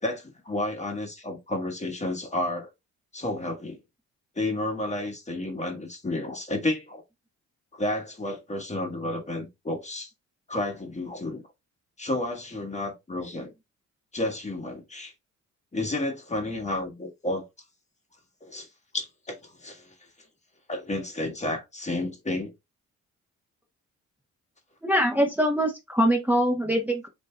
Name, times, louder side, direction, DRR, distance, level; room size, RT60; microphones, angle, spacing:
voice 1, 0.0-2.7 3.1-3.8 4.4-7.0 7.7-10.1 10.5-11.4 12.0-13.5 14.1-15.1 15.7-17.5 18.4-18.7 18.9-19.9 20.7-22.5, left 1 dB, 25° left, 1.4 m, -31 dB
voice 2, 24.8-27.1, equal, 5° right, 1.1 m, -23 dB
8.1 x 2.8 x 2.2 m
cardioid pair, 90°, 30 cm